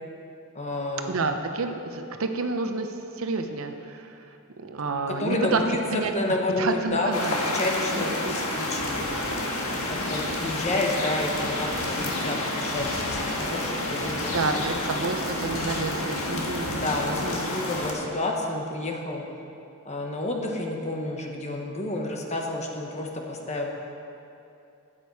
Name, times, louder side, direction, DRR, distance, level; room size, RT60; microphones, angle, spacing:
voice 1, 0.5-1.2 5.2-5.8 6.1-7.2 7.5-9.1 9.9-14.6 16.7-19.2 19.8-23.7, left 2 dB, 35° left, 1 dB, 1.2 m, -30 dB
voice 2, 1.1-5.6 5.9-6.1 6.6-7.6 7.9-8.4 14.3-16.8 17.1-17.6, right 3 dB, 70° right, 6 dB, 0.8 m, -30 dB
sound 1, 7.1-17.9, left 1 dB, 90° left, 1.6 m, -29 dB
12.5 x 9.1 x 4.7 m, 2.8 s
head